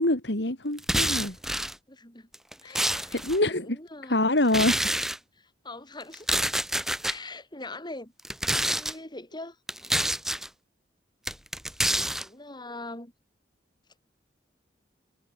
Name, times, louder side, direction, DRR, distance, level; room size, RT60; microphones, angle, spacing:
voice 1, 0.0-1.4 2.6-3.8 4.1-4.8, left 1 dB, 75° left, 3.7 m, -26 dB
sound 1, 0.8-1.7 2.3-3.4 4.5-5.2 6.1-7.2 8.2-8.9 9.7-10.5 11.3-12.3, right 1 dB, ahead, 0.7 m, -27 dB
voice 2, 1.9-2.3 2.6-3.1 3.5-4.2 5.4-6.4 7.0-8.1 8.7-9.6 12.2-13.1, left 2 dB, 25° left, 6.8 m, -42 dB
head